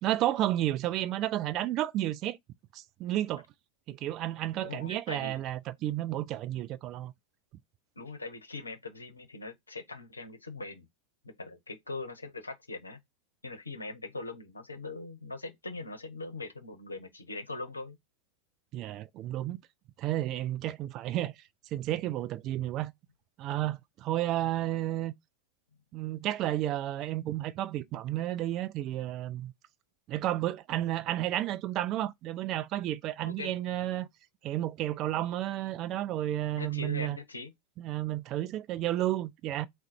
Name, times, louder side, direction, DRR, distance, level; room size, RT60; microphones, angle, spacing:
voice 1, 0.0-2.4 2.7-3.4 3.9-7.1 18.7-19.6 20.0-21.4 21.7-22.9 23.4-25.1 25.9-29.5 30.1-34.1 34.4-37.2 37.8-39.7, right 14 dB, 35° right, 0.3 m, -32 dB
voice 2, 4.6-5.4 8.0-10.9 11.2-13.0 13.4-18.0 33.3-33.5 36.6-37.5, left 3 dB, 80° left, 0.7 m, -41 dB
3.7 x 2.1 x 4.3 m
figure-of-eight pair, 90°, 0 cm